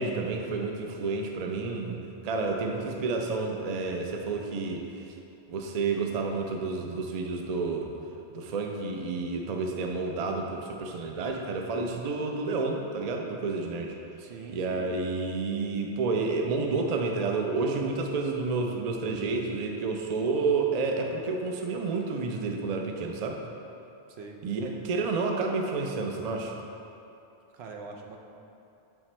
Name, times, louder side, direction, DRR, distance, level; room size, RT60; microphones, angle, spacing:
voice 1, 0.0-5.1 5.5-7.9 8.3-13.9 14.5-23.4 24.4-26.5, right 3 dB, 50° right, 2 dB, 0.5 m, -30 dB
voice 2, 14.2-14.9 24.1-24.4 27.5-28.2, right 4 dB, 80° right, 2 dB, 0.9 m, -43 dB
7.8 x 3.0 x 4.2 m, 2.8 s
omnidirectional pair, 1.1 m